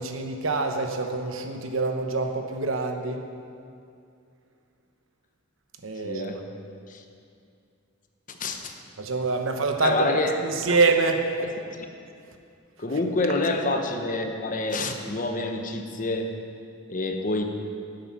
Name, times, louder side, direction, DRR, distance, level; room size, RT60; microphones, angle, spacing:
voice 1, 0.0-3.2 5.8-6.4 9.0-11.2, right 3 dB, 90° right, 4 dB, 1.0 m, -26 dB
voice 2, 6.0-6.4 6.9-7.0 8.3-8.7 9.8-10.4 10.7-10.8 11.4-11.9 12.8-16.3 16.9-17.4, left 2 dB, 40° left, 4 dB, 0.9 m, -27 dB
12.0 x 7.8 x 5.8 m, 2.4 s
head